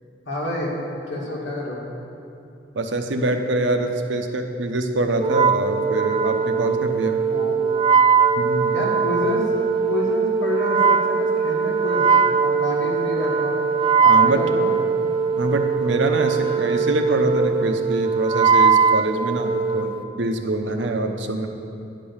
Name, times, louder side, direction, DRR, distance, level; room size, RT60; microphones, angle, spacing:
voice 1, 0.3-0.7 1.1-1.8 7.3-7.8 8.7-12.1 12.4-13.6 14.0-14.8 20.8-20.9, left 1 dB, 75° left, -4 dB, 2.3 m, -28 dB
voice 2, 2.7-7.2 8.4-8.8 14.0-14.5 15.4-21.5, right 2 dB, 75° right, 5 dB, 0.8 m, -24 dB
Wind instrument woodwind instrument, 5.2-19.9, right 5 dB, 30° right, 0.3 m, -20 dB
10.5 x 5.3 x 7.2 m, 2.6 s
head